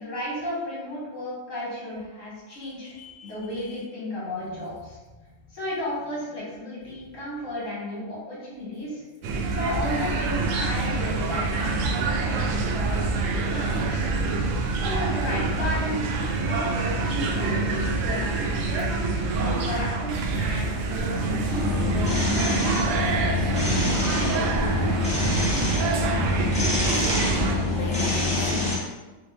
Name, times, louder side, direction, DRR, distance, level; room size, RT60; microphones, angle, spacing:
voice 1, 0.0-2.9 3.2-5.0 5.5-9.0 9.5-14.0 14.8-18.9 19.3-22.8, left 1 dB, 80° left, -6 dB, 1.8 m, -34 dB
voice 2, 2.5-3.8 4.4-4.6 5.1-5.2 26.9-27.3 27.7-28.7, left 2 dB, 40° left, -1 dB, 0.4 m, -40 dB
sound 1, 9.2-27.6, right 3 dB, 85° right, 0.9 m, -26 dB
sound 2, 21.5-28.8, left 2 dB, 5° left, 0.8 m, -25 dB
4.5 x 2.2 x 3.2 m, 1.2 s
omnidirectional pair, 1.3 m